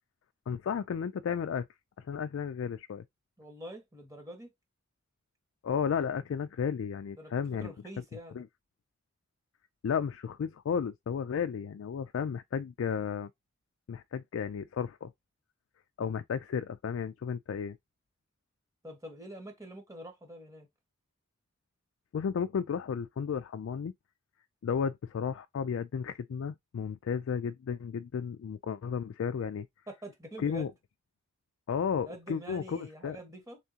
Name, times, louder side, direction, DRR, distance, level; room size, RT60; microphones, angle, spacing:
voice 1, 0.5-1.7 2.0-3.0 5.6-7.7 8.3-8.5 9.8-13.3 13.9-15.1 16.0-17.8 22.1-23.9 24.6-29.7 30.4-30.7 31.7-33.2, left 7 dB, 70° left, 0.3 m, -33 dB
voice 2, 3.4-4.5 7.2-7.3 7.6-8.4 18.8-20.7 29.9-30.7 32.0-33.6, right 1 dB, 15° right, 1.4 m, -45 dB
3.6 x 3.6 x 2.8 m
head